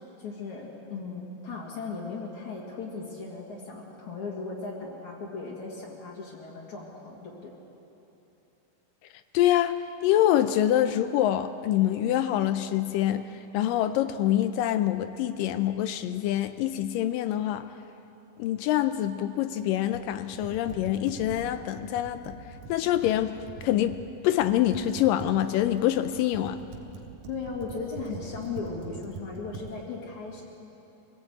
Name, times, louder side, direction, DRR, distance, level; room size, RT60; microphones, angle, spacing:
voice 1, 0.2-7.5 27.3-30.4, left 4 dB, 60° left, -4 dB, 3.3 m, -37 dB
voice 2, 9.3-13.3 13.5-17.7 18.4-22.4 22.7-23.3 23.6-24.0 24.2-26.6, left 12 dB, 80° left, 11 dB, 2.1 m, -25 dB
Computer keyboard, 19.9-24.1 24.4-29.7, right 4 dB, 90° right, 3.1 m, -43 dB
23.5 x 17.0 x 8.4 m, 2.9 s
omnidirectional pair, 4.1 m